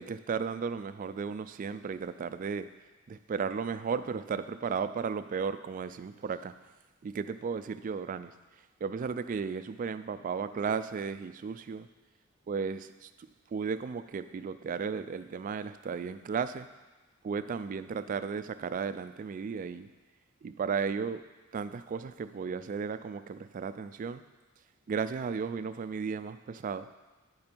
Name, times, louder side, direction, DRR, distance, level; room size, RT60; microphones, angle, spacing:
voice 1, 0.0-2.7 3.1-6.5 7.0-8.3 8.8-11.9 12.5-16.7 17.2-19.9 20.4-21.2 21.5-24.2 24.9-26.9, right 5 dB, 40° right, 12 dB, 0.3 m, -34 dB
9.5 x 5.2 x 4.5 m, 1.2 s
head